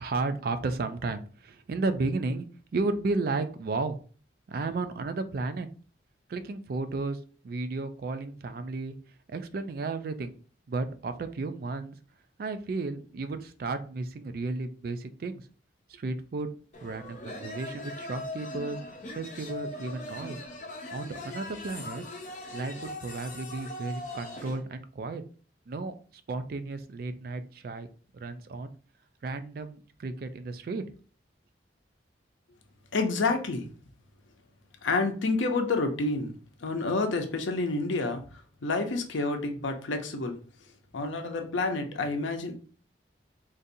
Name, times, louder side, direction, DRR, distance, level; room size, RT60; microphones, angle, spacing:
voice 1, 0.0-2.5 2.7-4.0 4.5-5.7 6.3-7.2 7.4-9.0 9.3-10.3 10.7-12.0 12.4-15.4 15.9-16.5 16.8-18.8 19.2-20.4 20.9-22.1 22.5-25.2 25.7-25.9 26.3-27.9 28.1-28.7 29.2-30.9, right 3 dB, 50° right, 10 dB, 0.3 m, -33 dB
sound 1, 16.7-24.6, left 2 dB, 40° left, 0.6 m, -40 dB
voice 2, 32.9-33.7 34.8-36.3 36.6-38.2 38.6-40.4 40.9-42.5, left 3 dB, 90° left, 5 dB, 0.6 m, -28 dB
3.9 x 2.5 x 2.6 m, 0.40 s
head